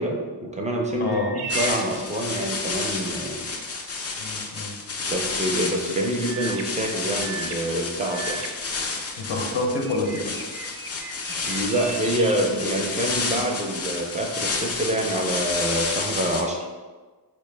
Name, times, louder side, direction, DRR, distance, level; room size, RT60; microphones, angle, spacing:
voice 1, 0.0-3.5 5.1-8.4 11.4-16.7, right 1 dB, 20° right, 1 dB, 0.4 m, -26 dB
voice 2, 1.0-1.4 4.2-4.8 9.2-10.3, left 2 dB, 85° left, 1 dB, 0.7 m, -27 dB
sound 1, 1.0-2.7 6.2-9.4 9.8-13.3, right 5 dB, 75° right, 0.5 m, -38 dB
sound 2, 1.5-16.4, left 3 dB, 40° left, 0.4 m, -30 dB
4.3 x 2.1 x 3.3 m, 1.3 s
wide cardioid pair, 110°, 41 cm